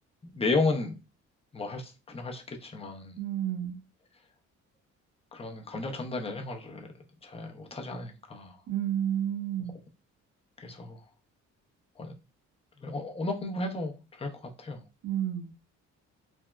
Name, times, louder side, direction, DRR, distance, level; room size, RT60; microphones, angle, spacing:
voice 1, 0.2-0.9 1.5-3.2 5.3-6.9 7.2-8.6 10.6-11.0 12.0-12.1 12.8-14.8, left 3 dB, 20° left, 0.6 m, -33 dB
voice 2, 3.2-3.8 8.7-9.7 15.0-15.5, right 10 dB, 65° right, 0.6 m, -30 dB
3.4 x 2.0 x 2.2 m
cardioid pair, 90°, 30 cm